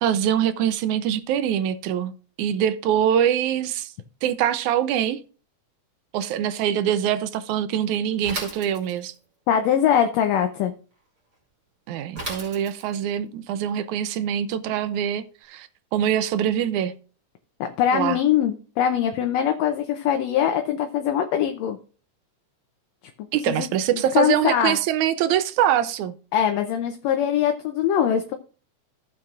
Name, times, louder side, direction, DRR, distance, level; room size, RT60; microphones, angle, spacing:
voice 1, 0.0-2.1 2.4-3.9 4.2-5.2 6.1-9.1 11.9-16.9 17.9-18.2 23.3-26.1, right 10 dB, 80° right, 2.0 m, -24 dB
Bicycle / Mechanisms, 8.2-9.2 12.2-13.1, right 2 dB, 30° right, 3.6 m, -34 dB
voice 2, 9.5-10.7 17.6-21.8 23.5-23.7 23.9-24.8 26.3-28.3, left 9 dB, 70° left, 1.7 m, -22 dB
15.5 x 7.4 x 2.5 m
omnidirectional pair, 3.6 m